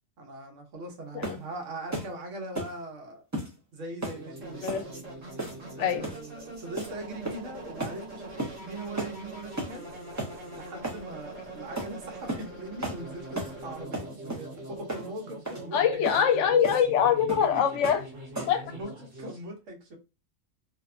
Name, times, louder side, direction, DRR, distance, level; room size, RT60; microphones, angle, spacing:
voice 1, 0.2-3.2 3.7-4.7 5.7-9.8 10.5-16.0 17.5-17.6 18.7-18.9 19.2-20.0, right 2 dB, 85° right, 1.2 m, -40 dB
sound 1, 1.2-1.5 1.9-2.1 2.5-2.8 3.3-3.5 4.0-4.2 4.7-4.9 5.4-5.7 6.0-6.2 6.8-6.9 7.2-7.5 7.8-8.0 8.4-8.6 9.0-9.2 9.6-9.8 10.2-10.3 10.8-11.0 11.8-11.9 12.3-12.5 12.8-13.0 13.3-13.6 13.9-14.5 14.9-15.1 15.4-15.6 16.0-16.2 16.6-16.9 17.3-17.5 17.8-18.0 18.3-18.6, right 1 dB, 20° right, 0.4 m, -34 dB
sound 2, 4.1-19.4, right 2 dB, 45° right, 1.4 m, -43 dB
voice 2, 5.8-6.1 15.7-18.0 18.5-18.6, left 8 dB, 75° left, 0.9 m, -24 dB
2.7 x 2.1 x 2.4 m
omnidirectional pair, 1.3 m